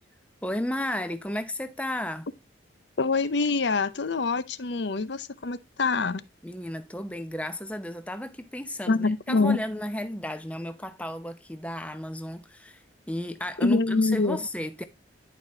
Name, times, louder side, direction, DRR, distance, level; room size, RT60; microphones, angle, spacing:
voice 1, 0.4-2.3 6.4-14.8, left 1 dB, 5° left, 0.7 m, -33 dB
voice 2, 3.0-6.2 8.9-9.6 13.6-14.4, left 3 dB, 70° left, 0.7 m, -25 dB
11.0 x 4.9 x 2.8 m
head